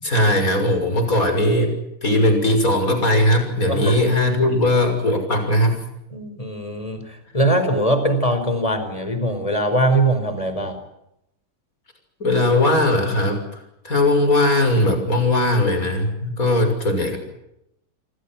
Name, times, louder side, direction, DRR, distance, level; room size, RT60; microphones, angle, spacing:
voice 1, 0.0-1.7 2.0-5.8 12.2-13.4 13.8-17.2, left 1 dB, 40° left, 6 dB, 6.9 m, -19 dB
voice 2, 3.7-4.0 6.1-10.8, right 1 dB, 15° left, 8 dB, 5.0 m, -21 dB
28.5 x 25.0 x 6.1 m, 0.81 s
omnidirectional pair, 2.4 m